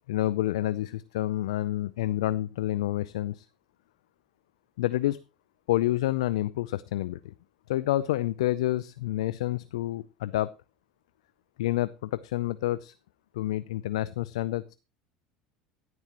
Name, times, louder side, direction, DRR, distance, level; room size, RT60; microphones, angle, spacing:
voice 1, 0.1-3.5 4.8-5.2 5.7-7.3 7.7-10.5 11.6-12.9 13.3-14.7, left 15 dB, 75° left, 17 dB, 0.5 m, -28 dB
16.5 x 11.0 x 3.0 m, 0.30 s
hypercardioid pair, 75°, 3 cm